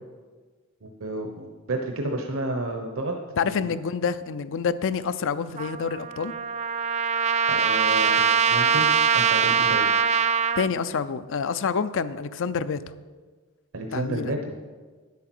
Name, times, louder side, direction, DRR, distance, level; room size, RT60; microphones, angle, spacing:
voice 1, 0.8-3.2 3.4-3.7 7.5-8.9 9.1-9.9 13.7-14.5, right 1 dB, 65° right, 3 dB, 0.9 m, -31 dB
voice 2, 3.4-6.3 10.6-12.8 13.9-14.3, left 6 dB, 60° left, 14 dB, 0.5 m, -27 dB
Trumpet, 5.6-10.7, right 6 dB, 30° right, 0.3 m, -22 dB
10.0 x 8.5 x 6.1 m, 1.4 s
head